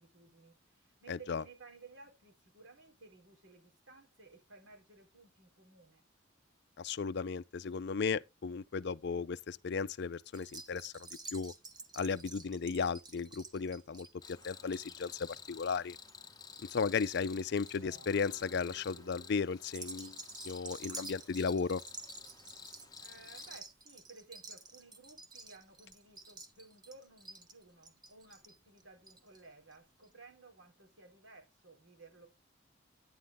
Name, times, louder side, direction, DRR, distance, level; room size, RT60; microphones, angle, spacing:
voice 1, 0.0-6.0 23.0-32.3, right 3 dB, 65° right, 3.8 m, -57 dB
voice 2, 1.1-1.4 6.8-11.5 11.9-16.0 16.6-20.2 20.4-21.8, left 5 dB, 55° left, 0.4 m, -35 dB
sound 1, 10.3-17.1 17.4-17.9 18.5-18.8 19.6-29.4 29.7-29.8 30.0-30.1, right 3 dB, 20° right, 1.2 m, -50 dB
Cricket, 14.2-23.6, left 6 dB, 20° left, 1.0 m, -52 dB
sound 2, 17.7-20.4, right 2 dB, 85° right, 5.4 m, -59 dB
10.0 x 9.7 x 3.5 m
head